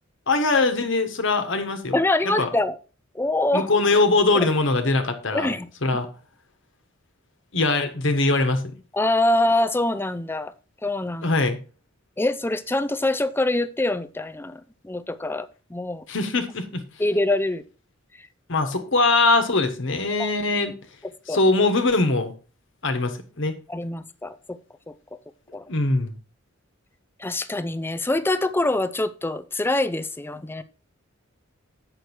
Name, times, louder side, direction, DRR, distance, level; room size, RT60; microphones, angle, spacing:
voice 1, 0.3-2.0 2.2-2.5 3.5-5.5 5.8-6.1 7.5-8.7 11.2-11.6 16.1-16.8 18.5-20.8 21.3-22.3 22.8-23.5 25.7-26.1, left 3 dB, 65° left, 7 dB, 1.3 m, -22 dB
voice 2, 1.9-2.8 3.1-3.7 4.3-4.5 5.3-5.7 8.9-10.5 10.8-11.3 12.2-16.0 17.0-17.6 18.2-18.3 20.2-20.3 21.3-21.4 23.7-24.6 24.9-25.0 25.5-25.7 27.2-30.6, left 2 dB, 10° left, 13 dB, 0.5 m, -24 dB
8.3 x 6.3 x 4.4 m, 0.36 s
head